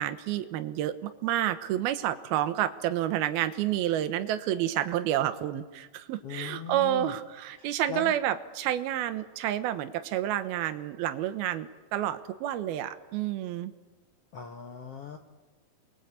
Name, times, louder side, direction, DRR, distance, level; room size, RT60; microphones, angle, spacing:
voice 1, 0.0-13.7, right 12 dB, 80° right, 10 dB, 2.9 m, -29 dB
voice 2, 6.2-7.1 7.6-8.1 14.3-15.2, left 8 dB, 80° left, 5 dB, 1.3 m, -39 dB
29.0 x 22.5 x 8.3 m, 1.3 s
omnidirectional pair, 4.5 m